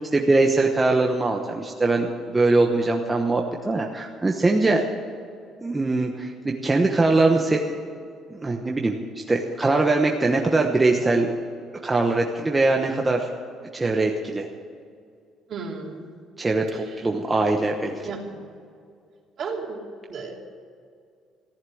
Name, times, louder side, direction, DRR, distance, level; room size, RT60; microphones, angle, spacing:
voice 1, 0.1-4.8 5.6-7.6 8.3-9.0 9.3-11.3 11.8-13.3 13.7-14.5 16.4-18.0, right 2 dB, 15° right, 1 dB, 1.1 m, -22 dB
voice 2, 15.5-16.2 16.7-17.0 18.0-18.4 19.4-19.8 20.1-20.3, right 4 dB, 50° right, 0 dB, 3.1 m, -34 dB
14.5 x 10.5 x 7.8 m, 2.3 s
cardioid pair, 120°, 0 cm